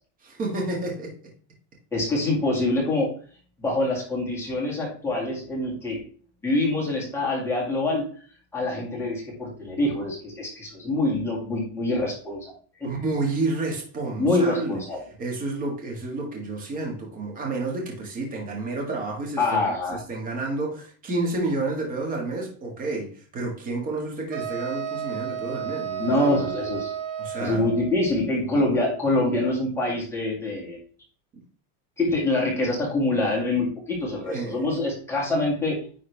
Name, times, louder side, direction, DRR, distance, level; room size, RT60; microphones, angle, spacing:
voice 1, 0.2-1.2 12.8-14.8 15.2-19.6 20.1-26.4 27.2-27.6 28.5-28.6 34.2-34.6, right 2 dB, 20° right, 1.7 m, -30 dB
voice 2, 1.9-3.1 3.6-6.0 6.4-8.1 8.5-12.5 12.8-12.9 14.2-15.0 19.4-20.0 26.0-26.9 27.4-30.8 32.0-35.8, left 2 dB, 5° left, 2.2 m, -25 dB
sound 1, 24.3-28.0, right 8 dB, 50° right, 1.7 m, -32 dB
9.9 x 3.7 x 3.4 m
supercardioid pair, 170°, 39 cm